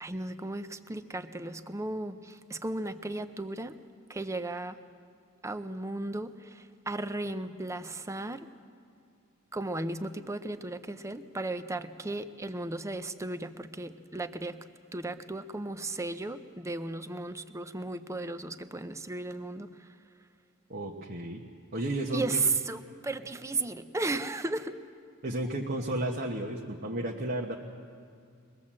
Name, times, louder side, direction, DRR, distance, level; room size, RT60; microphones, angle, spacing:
voice 1, 0.0-3.8 4.1-4.8 5.4-8.5 9.5-14.6 14.9-19.9 22.1-24.8, right 2 dB, 15° right, 10 dB, 0.6 m, -35 dB
voice 2, 20.7-21.4 21.7-22.4 25.2-27.6, right 1 dB, 45° right, 0 dB, 1.2 m, -33 dB
22.5 x 18.5 x 7.5 m, 2.3 s
head